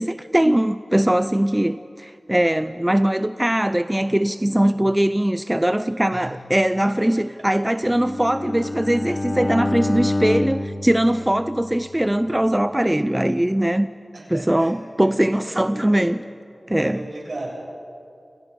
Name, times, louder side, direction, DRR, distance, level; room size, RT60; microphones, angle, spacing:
voice 1, 0.0-13.9 14.3-16.2 16.7-17.0, right 1 dB, 15° right, 11 dB, 0.5 m, -21 dB
Bowed string instrument, 7.8-12.0, left 1 dB, 40° left, 1.4 m, -27 dB
voice 2, 14.1-16.1 16.8-17.5, right 2 dB, 65° right, -1 dB, 7.5 m, -36 dB
29.5 x 27.0 x 5.4 m, 2.5 s
wide cardioid pair, 75°, 0 cm